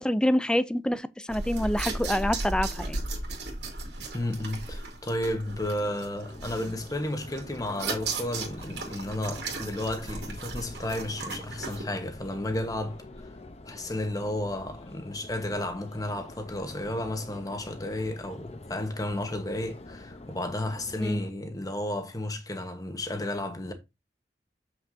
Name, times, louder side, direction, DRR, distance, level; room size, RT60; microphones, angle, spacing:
voice 1, 0.0-3.0 21.0-21.2, left 1 dB, 5° left, 0.4 m, -27 dB
sound 1, 1.3-11.8, right 3 dB, 70° right, 2.4 m, -36 dB
voice 2, 4.1-13.0 13.6-23.7, left 1 dB, 20° left, 1.2 m, -32 dB
Subway metro underground, 6.3-21.3, left 2 dB, 35° left, 0.8 m, -46 dB
7.4 x 6.0 x 2.7 m
head